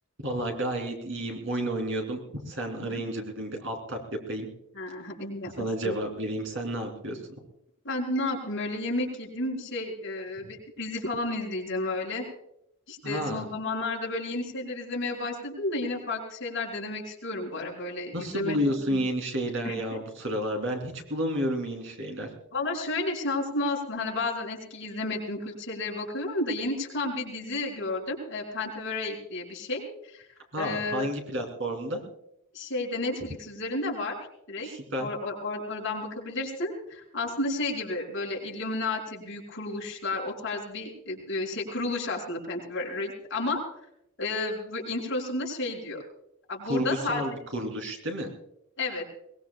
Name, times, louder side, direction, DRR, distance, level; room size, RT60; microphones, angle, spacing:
voice 1, 0.2-2.2 2.5-4.0 4.3-4.5 5.6-7.2 13.0-13.4 18.1-22.3 30.5-32.0 34.6-35.1 46.6-48.3, equal, 65° right, 3 dB, 3.1 m, -31 dB
voice 2, 2.7-3.0 4.7-5.9 7.8-12.3 12.9-18.6 18.9-19.0 19.6-19.8 22.5-30.2 30.6-31.1 32.5-34.2 34.5-34.7 35.0-43.6 44.2-46.0 46.5-47.2 48.8-49.1, left 2 dB, 55° left, -2 dB, 5.0 m, -32 dB
22.5 x 20.5 x 2.3 m, 0.78 s
head